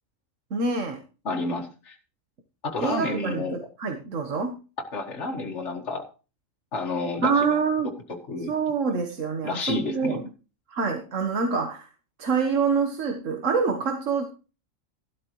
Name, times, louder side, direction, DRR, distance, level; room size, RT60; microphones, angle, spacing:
voice 1, 0.5-1.0 2.8-4.6 7.2-8.0 8.5-10.2 10.7-11.9 12.2-14.2, right 5 dB, 70° right, 5 dB, 1.7 m, -26 dB
voice 2, 1.3-2.0 2.6-3.6 4.9-6.0 6.7-7.5 8.3-8.5 9.4-10.2, left 2 dB, 60° left, 1 dB, 1.9 m, -30 dB
12.5 x 12.5 x 3.1 m, 0.34 s
omnidirectional pair, 1.4 m